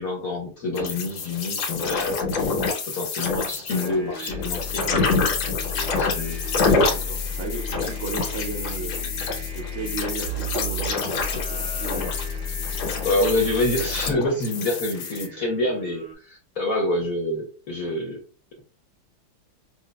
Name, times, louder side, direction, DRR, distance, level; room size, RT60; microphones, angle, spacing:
voice 1, 0.0-2.4 2.9-4.8 5.9-6.8 13.0-18.2, left 1 dB, 60° left, 0 dB, 1.0 m, -27 dB
sound 1, 0.8-15.3, left 4 dB, 90° left, 1.7 m, -27 dB
Singing, 3.7-16.1, right 2 dB, 30° right, 1.4 m, -43 dB
sound 2, 4.3-14.1, left 4 dB, 60° right, 0.5 m, -33 dB
voice 2, 5.8-6.3 6.9-9.1 9.5-12.0, right 4 dB, 75° right, 2 dB, 1.7 m, -35 dB
6.1 x 2.2 x 2.2 m, 0.37 s
omnidirectional pair, 2.2 m